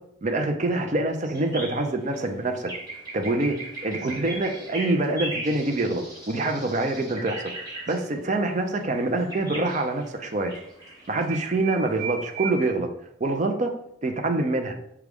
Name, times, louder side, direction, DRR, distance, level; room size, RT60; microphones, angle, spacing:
voice 1, 0.2-2.7 3.1-3.6 3.8-7.4 7.9-10.5 11.1-12.9 13.2-13.7 14.0-14.8, right 2 dB, 40° right, 4 dB, 0.5 m, -25 dB
sound 1, 1.2-12.7, right 3 dB, 20° right, 1.2 m, -38 dB
6.0 x 2.3 x 3.5 m, 0.75 s
head